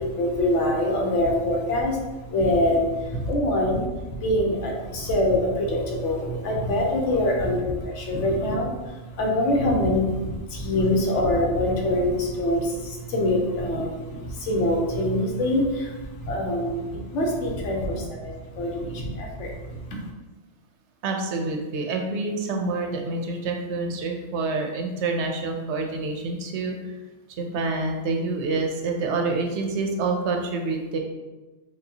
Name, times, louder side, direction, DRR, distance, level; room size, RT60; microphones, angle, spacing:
voice 1, 0.0-2.0 2.3-3.9 4.2-15.9 16.2-19.8, left 1 dB, 85° left, 0 dB, 1.0 m, -24 dB
voice 2, 21.0-26.8 27.4-31.0, right 3 dB, 75° right, 2 dB, 0.8 m, -27 dB
4.7 x 2.3 x 2.7 m, 1.2 s
omnidirectional pair, 1.2 m